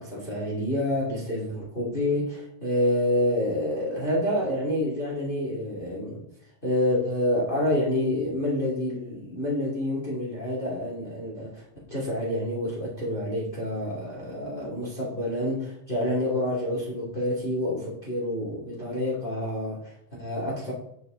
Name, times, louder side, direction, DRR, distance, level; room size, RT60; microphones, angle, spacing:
voice 1, 0.0-6.2 6.6-20.7, left 1 dB, 20° left, -4 dB, 2.5 m, -28 dB
9.2 x 8.6 x 3.8 m, 0.76 s
omnidirectional pair, 3.3 m